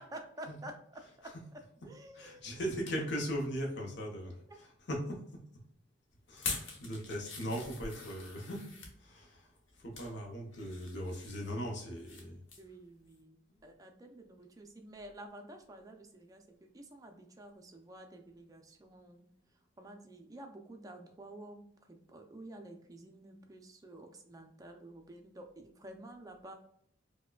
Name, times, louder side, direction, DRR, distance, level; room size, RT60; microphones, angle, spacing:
voice 1, 0.0-1.3 1.8-2.5 12.6-16.4 16.7-19.3 19.8-26.5, right 1 dB, 20° right, 4 dB, 0.4 m, -50 dB
voice 2, 0.9-1.4 2.1-5.2 6.3-9.5 9.8-12.4, equal, 60° left, 0 dB, 0.8 m, -39 dB
sound 1, 6.3-8.9 9.6-10.1 10.5-12.2 12.5-12.7 13.1-13.2, left 4 dB, 90° left, 0.9 m, -44 dB
4.7 x 2.2 x 2.2 m, 0.70 s
head